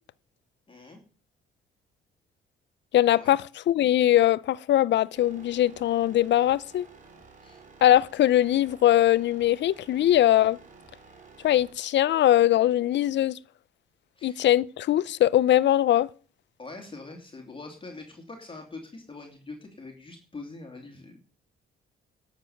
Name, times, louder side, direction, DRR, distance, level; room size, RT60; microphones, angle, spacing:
voice 1, 0.7-1.0 3.1-3.4 7.4-7.6 14.2-14.4 16.6-21.2, left 3 dB, 25° left, 2.8 m, -43 dB
voice 2, 2.9-6.9 7.8-10.6 11.4-13.4 14.2-16.1, left 12 dB, 65° left, 0.6 m, -21 dB
sound 1, 5.2-11.7, right 4 dB, 40° right, 3.6 m, -52 dB
11.5 x 7.2 x 7.2 m
cardioid pair, 90°, 20 cm